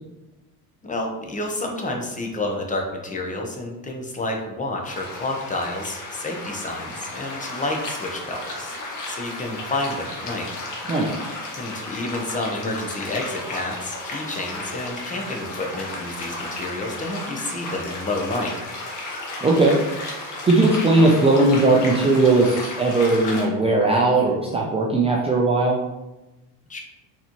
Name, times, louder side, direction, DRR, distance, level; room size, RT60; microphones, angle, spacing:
voice 1, 0.8-8.7 9.1-10.5 11.5-18.5 26.7-26.8, left 2 dB, 15° left, 1 dB, 0.8 m, -29 dB
sound 1, 4.8-23.5, left 2 dB, 40° left, 1.4 m, -34 dB
voice 2, 19.4-19.7 20.4-25.8, right 2 dB, 15° right, -2 dB, 0.5 m, -18 dB
4.2 x 4.1 x 3.0 m, 1.0 s
supercardioid pair, 110°, 45 cm